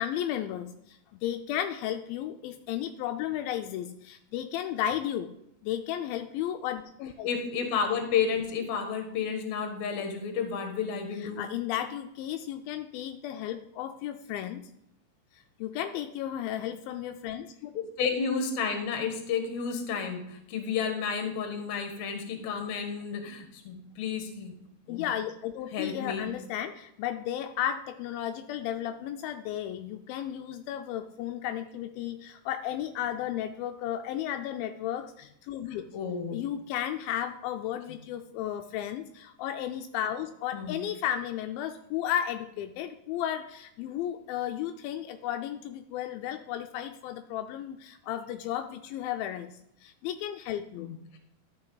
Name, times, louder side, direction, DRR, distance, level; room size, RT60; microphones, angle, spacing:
voice 1, 0.0-5.3 5.6-7.3 11.2-14.6 15.3-17.7 24.9-35.8 36.3-49.5 49.8-50.9, left 11 dB, 85° left, 7 dB, 2.3 m, -34 dB
voice 2, 7.2-11.4 17.7-24.5 24.9-25.0 25.7-26.3 35.9-36.4 40.5-40.8 50.8-51.2, left 6 dB, 60° left, 5 dB, 2.2 m, -31 dB
12.0 x 6.0 x 3.9 m, 0.78 s
omnidirectional pair, 4.2 m